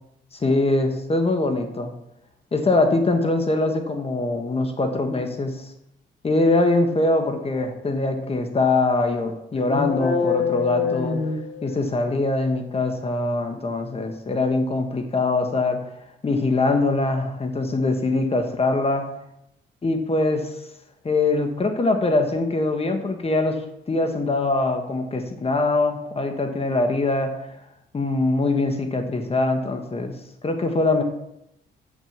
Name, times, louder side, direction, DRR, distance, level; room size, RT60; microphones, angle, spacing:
voice 1, 0.3-1.9 2.5-5.7 6.2-11.2 11.6-15.8 16.2-19.1 19.8-20.5 21.0-23.6 23.9-27.5 27.9-30.1 30.4-31.0, left 2 dB, 30° left, 5 dB, 1.4 m, -23 dB
sound 1, 9.6-12.1, left 6 dB, 70° left, 1.7 m, -25 dB
7.8 x 6.3 x 7.3 m, 0.82 s
cardioid pair, 90°, 20 cm